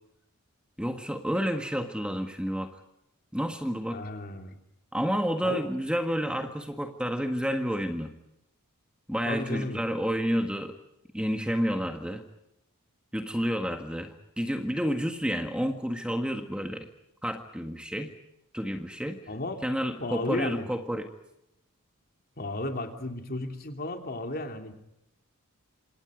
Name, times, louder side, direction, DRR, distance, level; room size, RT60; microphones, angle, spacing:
voice 1, 0.8-2.7 3.3-4.0 4.9-8.1 9.1-10.7 11.1-12.2 13.1-16.9 17.2-18.1 18.5-19.2 19.6-21.1, equal, 5° right, 5 dB, 1.7 m, -30 dB
voice 2, 3.9-4.6 5.4-5.6 9.2-9.8 19.3-19.6 20.0-20.7 22.4-24.7, left 2 dB, 45° left, 5 dB, 3.2 m, -34 dB
27.5 x 27.0 x 5.1 m, 0.84 s
head